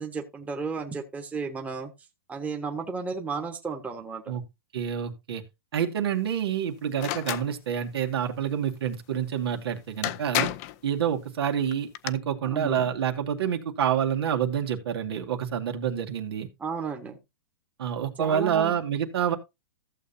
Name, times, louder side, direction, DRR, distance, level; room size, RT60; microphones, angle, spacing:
voice 1, 0.0-1.9 2.3-4.4 12.4-12.9 16.6-17.2 18.2-18.8, right 5 dB, 10° right, 1.3 m, -33 dB
voice 2, 4.7-5.4 5.7-10.5 10.8-16.5 17.8-19.4, right 8 dB, 75° right, 2.1 m, -28 dB
sound 1, 7.0-7.5 9.5-9.6 10.0-10.8 11.7-12.1, left 15 dB, 40° left, 0.6 m, -29 dB
14.5 x 7.2 x 2.7 m
hypercardioid pair, 145°, 13 cm